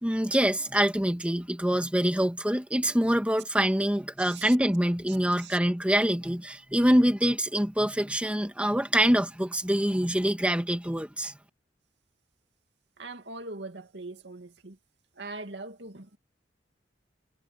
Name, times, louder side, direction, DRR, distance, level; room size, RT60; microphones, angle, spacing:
voice 1, 0.0-11.3, equal, 5° right, 1.7 m, -25 dB
voice 2, 4.2-4.5 5.4-5.6 13.0-14.8 15.2-16.2, right 3 dB, 75° right, 2.5 m, -41 dB
head